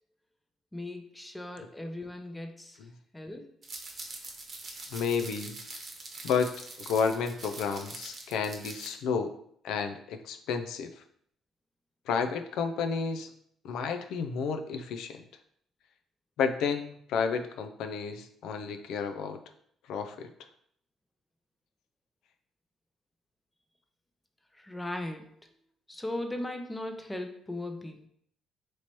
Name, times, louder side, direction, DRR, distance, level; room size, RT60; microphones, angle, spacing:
voice 1, 0.7-2.8 3.1-3.5 24.5-25.3 25.9-28.1, left 1 dB, 10° left, 5 dB, 0.6 m, -38 dB
sound 1, 3.6-8.9, right 3 dB, 45° right, 1.0 m, -43 dB
voice 2, 4.9-5.6 6.2-6.5 6.8-9.4 9.6-11.0 12.1-13.3 13.6-15.2 16.4-19.4 19.9-20.3, left 6 dB, 80° left, 7 dB, 0.4 m, -31 dB
3.1 x 2.8 x 4.3 m, 0.65 s
supercardioid pair, 65°, 0 cm